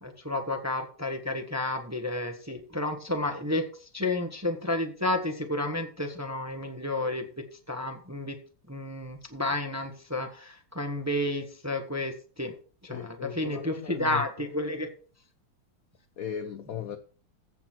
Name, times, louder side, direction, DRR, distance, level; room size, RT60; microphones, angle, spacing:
voice 1, 0.0-3.7 3.9-7.3 7.7-8.4 8.7-12.5 12.8-14.9, left 1 dB, 10° right, 0.9 m, -31 dB
voice 2, 12.9-14.2 16.2-17.0, left 8 dB, 70° left, 0.8 m, -37 dB
15.5 x 6.0 x 4.5 m
omnidirectional pair, 2.4 m